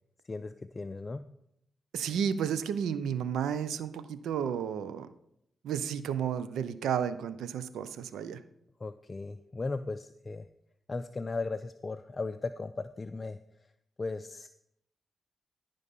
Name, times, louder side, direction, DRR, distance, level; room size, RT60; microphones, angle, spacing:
voice 1, 0.3-1.2 8.8-10.5 10.9-13.4 14.0-14.5, left 3 dB, 35° left, 10 dB, 0.5 m, -36 dB
voice 2, 1.9-5.1 5.6-8.4, right 8 dB, 85° right, 14 dB, 0.6 m, -32 dB
14.0 x 5.3 x 5.4 m, 0.75 s
cardioid pair, 55°, 0 cm